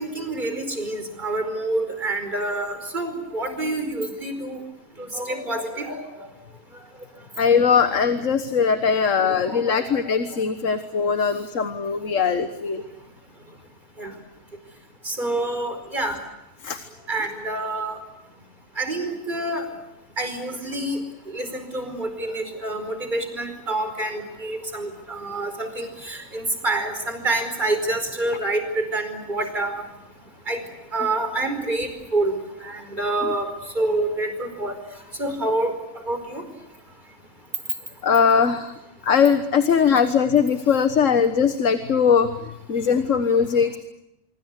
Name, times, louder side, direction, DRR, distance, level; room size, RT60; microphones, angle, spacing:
voice 1, 0.0-4.6 5.0-6.3 9.1-10.0 14.0-14.1 15.0-16.2 17.1-18.0 18.8-19.6 20.2-29.8 30.5-30.6 30.9-33.5 33.7-34.8 35.2-36.4 39.9-40.0, right 2 dB, 40° right, 8 dB, 5.1 m, -27 dB
voice 2, 7.4-12.8 15.2-15.3 16.6-16.8 33.2-33.3 38.0-38.7 39.0-43.8, left 6 dB, 75° left, 10 dB, 1.7 m, -20 dB
26.5 x 24.5 x 8.2 m, 0.87 s
omnidirectional pair, 1.3 m